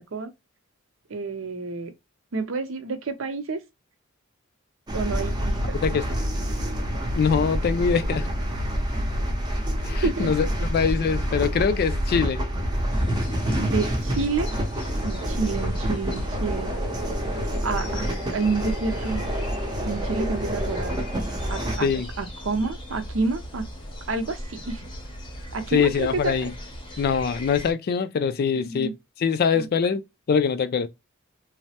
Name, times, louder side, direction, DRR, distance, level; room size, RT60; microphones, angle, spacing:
voice 1, 1.1-1.9 2.3-3.6 4.9-5.8 10.0-10.3 13.6-14.5 15.0-16.7 17.6-19.2 19.8-21.0 21.5-21.9 22.2-23.6 24.1-24.9 25.5-26.5 28.5-28.9 29.5-29.7, right 4 dB, 70° right, 0.6 m, -29 dB
sound 1, 4.9-21.8, equal, 20° right, 0.6 m, -27 dB
voice 2, 7.2-8.3 9.8-12.4 21.8-22.1 25.7-26.5 27.0-28.9 29.2-30.0 30.3-30.9, left 6 dB, 50° left, 0.3 m, -23 dB
sound 2, 12.9-27.7, equal, 25° left, 0.7 m, -38 dB
3.2 x 2.0 x 2.7 m
head